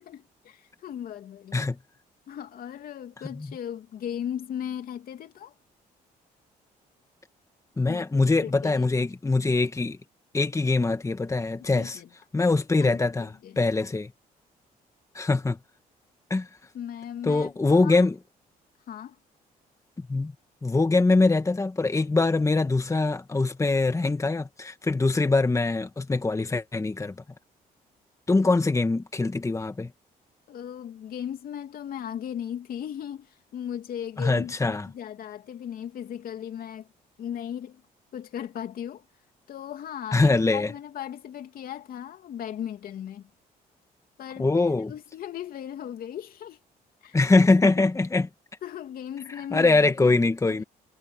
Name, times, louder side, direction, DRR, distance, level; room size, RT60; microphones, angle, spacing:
voice 1, 0.0-1.7 2.3-5.5 7.8-8.9 11.7-12.1 12.8-13.6 16.7-18.0 18.9-19.1 30.5-36.9 37.2-37.8 38.1-39.0 39.5-43.3 44.2-46.6 47.0-47.2 47.7-47.9 48.6-50.6, left 9 dB, 65° left, 3.0 m, -37 dB
voice 2, 7.8-10.0 10.3-12.0 12.3-14.1 15.1-15.6 16.3-16.5 17.2-18.2 20.1-20.3 20.6-27.1 28.3-29.9 34.2-34.9 40.1-40.7 44.4-44.9 47.1-48.3 49.5-50.6, left 3 dB, 20° left, 1.9 m, -23 dB
cardioid pair, 85°, 16 cm